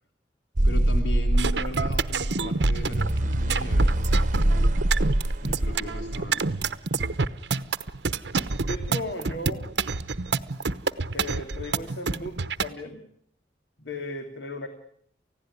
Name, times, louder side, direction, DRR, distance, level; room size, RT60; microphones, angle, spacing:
voice 1, 0.6-4.7 5.4-6.5, left 1 dB, 90° left, 5 dB, 3.4 m, -37 dB
sound 1, 0.6-6.6, right 1 dB, 45° right, 1.0 m, -24 dB
sound 2, 1.3-12.7, right 3 dB, 85° right, 1.0 m, -27 dB
voice 2, 8.7-9.7 11.1-13.0 13.8-14.7, left 1 dB, 75° left, 6 dB, 2.6 m, -36 dB
29.5 x 16.5 x 9.8 m, 0.69 s
head